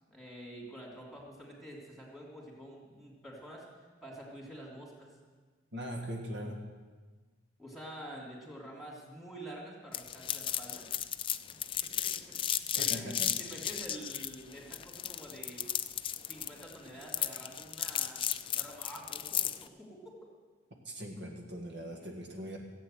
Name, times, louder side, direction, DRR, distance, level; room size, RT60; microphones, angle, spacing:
voice 1, 0.1-5.1 7.6-10.9 11.8-13.1 13.4-15.6 16.2-18.2 18.5-20.2, right 1 dB, ahead, -3 dB, 3.2 m, -48 dB
voice 2, 5.7-6.6 12.8-13.3 20.8-22.6, equal, 65° right, 1 dB, 1.7 m, -40 dB
sound 1, 9.9-19.6, left 10 dB, 25° left, 0.4 m, -34 dB
15.0 x 8.5 x 7.8 m, 1.4 s
head